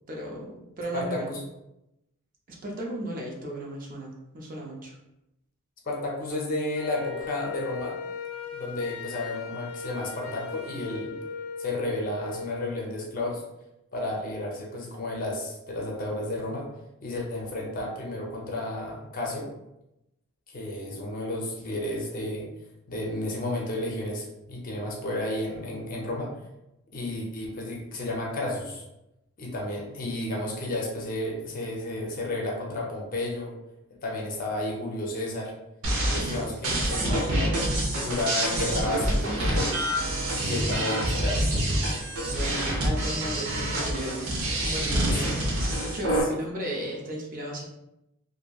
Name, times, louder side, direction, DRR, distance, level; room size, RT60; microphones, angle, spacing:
voice 1, 0.1-1.3 2.5-5.0 25.8-25.9 42.3-47.7, right 1 dB, 40° right, -2 dB, 0.5 m, -35 dB
voice 2, 0.9-1.4 5.8-8.0 8.5-11.2 11.6-13.4 13.9-16.7 17.0-19.5 20.5-22.5 22.9-26.3 26.9-28.8 29.4-33.6 34.0-35.5 36.1-37.6 38.0-39.7 40.4-41.5 45.1-45.4 46.2-46.3, left 1 dB, 40° left, -1 dB, 0.5 m, -32 dB
Wind instrument woodwind instrument, 6.7-12.8, left 5 dB, 90° left, 0.5 m, -38 dB
sound 1, 35.8-46.2, right 1 dB, 80° right, 0.7 m, -27 dB
2.8 x 2.5 x 2.3 m, 0.89 s
head